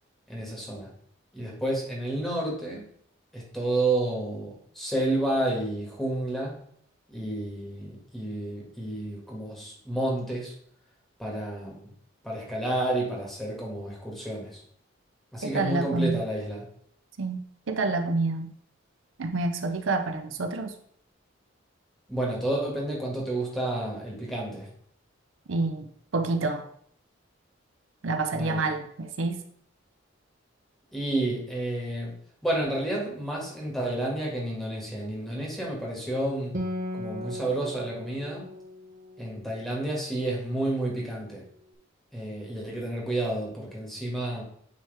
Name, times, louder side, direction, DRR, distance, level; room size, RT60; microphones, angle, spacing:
voice 1, 0.3-0.9 1.3-2.9 3.3-6.6 7.1-10.5 11.2-11.9 12.2-14.6 15.3-16.7 22.1-24.7 28.3-28.7 30.9-32.1 32.4-36.6 36.9-38.5 39.2-41.4 42.1-44.4, right 1 dB, ahead, -4 dB, 1.6 m, -30 dB
voice 2, 15.5-16.2 17.2-17.4 17.7-18.5 19.2-20.7 25.5-25.9 26.1-26.6 28.0-29.4, right 3 dB, 80° right, 7 dB, 0.6 m, -27 dB
Acoustic guitar, 36.5-40.3, left 1 dB, 40° right, 0.9 m, -37 dB
9.4 x 3.3 x 3.4 m, 0.63 s
head